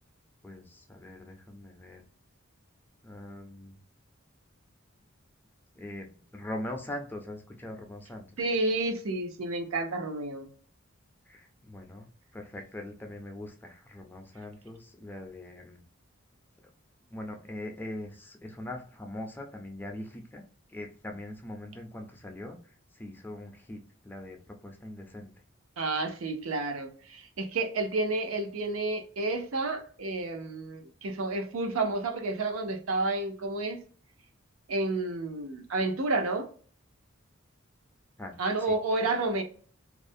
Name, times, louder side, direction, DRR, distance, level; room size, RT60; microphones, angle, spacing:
voice 1, 0.4-2.0 3.0-3.8 5.8-8.3 11.3-12.1 12.3-15.8 17.1-20.4 20.7-22.6 23.0-23.8 24.0-24.4 24.6-25.3 38.2-38.3 38.7-38.8, left 1 dB, 10° left, 0.4 m, -41 dB
voice 2, 8.4-10.5 25.8-33.8 34.7-36.5 38.4-39.4, right 2 dB, 85° right, 0.6 m, -30 dB
2.4 x 2.0 x 2.5 m
head